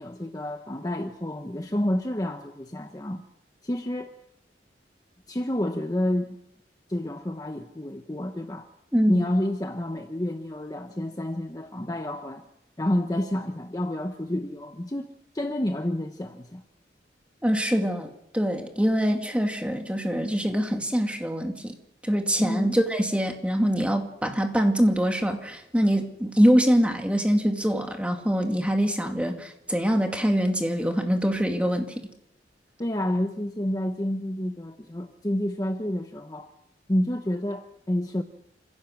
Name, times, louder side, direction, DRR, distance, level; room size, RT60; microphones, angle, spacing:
voice 1, 0.0-3.3 3.6-4.1 5.3-6.4 6.9-8.7 9.1-12.5 12.8-16.6 22.4-22.8 32.8-36.5 36.9-38.2, left 1 dB, 20° left, 6 dB, 0.9 m, -29 dB
voice 2, 8.9-9.2 17.4-21.8 22.0-31.9, equal, 5° right, 3 dB, 2.3 m, -24 dB
28.5 x 16.5 x 6.5 m, 0.86 s
head